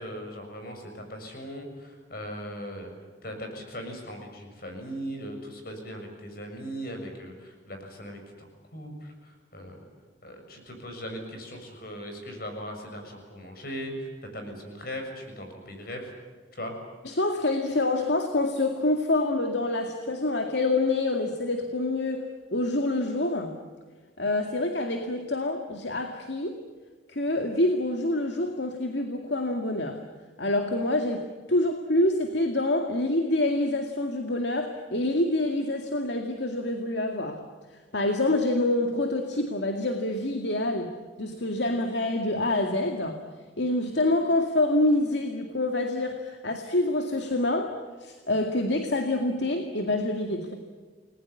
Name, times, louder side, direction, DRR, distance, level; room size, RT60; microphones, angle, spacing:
voice 1, 0.0-2.9 3.2-9.8 10.2-14.1 14.3-16.1 16.5-16.7, equal, 50° left, 4 dB, 6.8 m, -39 dB
voice 2, 17.0-22.3 22.5-23.6 24.2-26.6 27.1-30.0 30.4-37.4 37.9-43.2 43.6-50.5, left 2 dB, 65° left, 5 dB, 2.2 m, -26 dB
30.0 x 20.5 x 8.5 m, 1.4 s
head